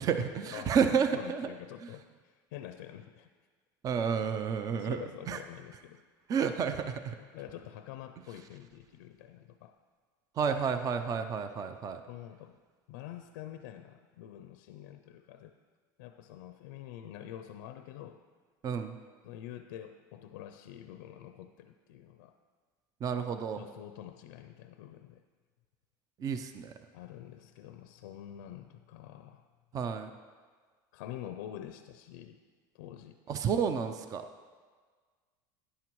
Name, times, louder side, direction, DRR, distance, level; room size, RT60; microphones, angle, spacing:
voice 1, 0.0-1.5 3.8-5.4 6.3-7.1 10.4-12.0 18.6-19.0 23.0-23.6 26.2-26.7 29.7-30.1 33.3-34.2, right 6 dB, 35° right, 9 dB, 0.5 m, -30 dB
voice 2, 1.1-3.3 4.7-6.0 7.3-9.8 12.1-12.6 12.9-15.5 16.0-18.2 19.2-22.4 23.6-25.2 26.9-29.4 30.9-32.4 32.7-33.2, left 11 dB, 80° left, 9 dB, 0.5 m, -46 dB
11.5 x 9.6 x 3.1 m, 1.5 s
supercardioid pair, 110°, 10 cm